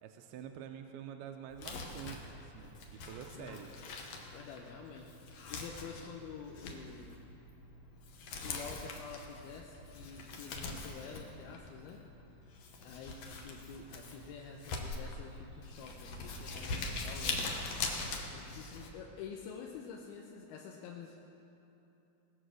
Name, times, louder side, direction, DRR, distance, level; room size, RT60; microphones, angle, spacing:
voice 1, 0.0-3.7, right 9 dB, 85° right, 5 dB, 2.5 m, -47 dB
Crumpling crinkling, 1.5-18.9, left 3 dB, 65° left, 1.6 m, -43 dB
voice 2, 4.3-7.1 8.4-12.0 12.3-12.4 12.8-17.6 18.3-21.2, left 6 dB, 90° left, 0 dB, 2.7 m, -48 dB
19.0 x 8.0 x 6.3 m, 3.0 s
omnidirectional pair, 4.4 m